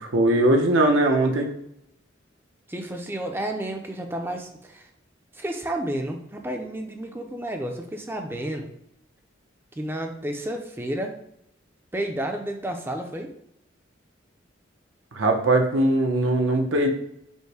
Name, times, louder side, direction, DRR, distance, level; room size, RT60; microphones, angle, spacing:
voice 1, 0.0-1.5 15.1-16.9, right 1 dB, 80° right, 4 dB, 0.8 m, -20 dB
voice 2, 2.7-4.9 5.3-8.7 9.8-11.2 11.9-13.3, right 1 dB, 10° right, 4 dB, 0.4 m, -31 dB
5.3 x 2.1 x 4.7 m, 0.76 s
head